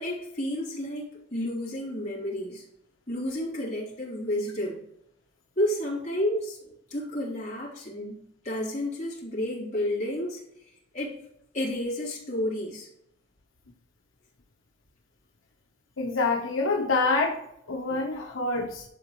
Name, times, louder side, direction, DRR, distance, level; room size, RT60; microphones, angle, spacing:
voice 1, 0.0-2.6 3.1-4.8 5.6-8.2 8.4-10.4 10.9-11.2 11.5-12.9, left 1 dB, 35° left, -5 dB, 3.0 m, -31 dB
voice 2, 16.0-17.4 17.7-18.8, left 3 dB, 80° left, 1 dB, 0.9 m, -26 dB
11.0 x 4.1 x 3.1 m, 0.77 s
head